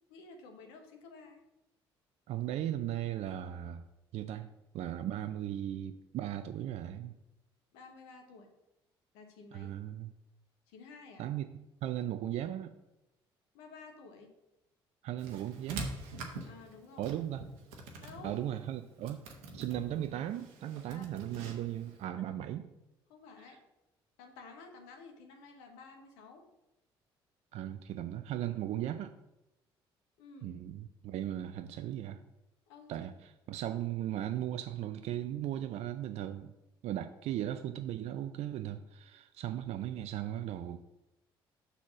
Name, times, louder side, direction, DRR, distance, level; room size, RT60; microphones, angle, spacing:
voice 1, 0.1-1.4 7.7-8.5 9.1-9.7 10.7-11.2 13.5-14.3 16.4-17.1 18.0-18.3 20.9-21.1 23.1-23.6 24.2-26.4 30.2-30.6 32.7-32.9, left 4 dB, 75° left, 3 dB, 1.2 m, -52 dB
voice 2, 2.3-3.9 4.1-4.5 4.7-7.1 9.5-10.1 11.2-11.5 11.8-12.7 15.0-15.9 17.0-17.4 18.2-19.3 19.5-22.7 23.5-23.6 27.5-29.1 30.4-32.2 32.9-36.5 36.8-40.8, right 12 dB, 55° right, 8 dB, 0.4 m, -37 dB
sound 1, 15.2-22.1, right 3 dB, 75° right, 1.0 m, -45 dB
5.7 x 4.1 x 5.9 m, 0.91 s
hypercardioid pair, 50°, 13 cm